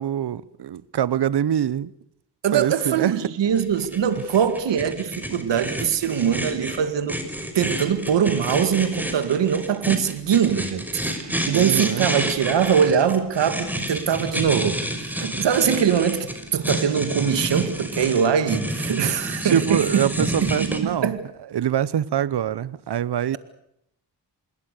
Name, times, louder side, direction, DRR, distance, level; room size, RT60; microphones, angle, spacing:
voice 1, 0.0-1.9 2.5-3.2 11.5-12.1 19.4-21.1 21.5-23.4, right 9 dB, 70° right, 1.1 m, -24 dB
voice 2, 2.4-7.2 7.5-21.2, right 8 dB, 85° right, 2.1 m, -22 dB
sound 1, 3.6-20.8, equal, 5° right, 5.9 m, -29 dB
27.0 x 21.0 x 6.7 m
cardioid pair, 55°, 42 cm